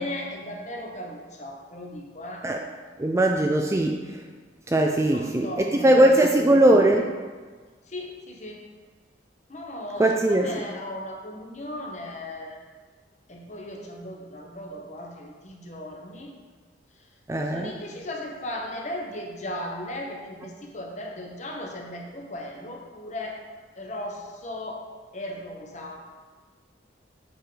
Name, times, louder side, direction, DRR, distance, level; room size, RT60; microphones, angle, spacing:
voice 1, 0.0-2.5 4.9-6.3 6.6-7.0 7.9-8.6 9.5-12.6 13.3-16.3 17.5-23.4 23.8-24.8 25.1-26.2, left 1 dB, 40° left, 0 dB, 1.0 m, -37 dB
voice 2, 3.0-4.0 4.7-7.1 10.0-10.5 17.3-17.7, right 1 dB, 15° right, 2 dB, 0.3 m, -20 dB
8.2 x 4.9 x 3.9 m, 1.4 s
head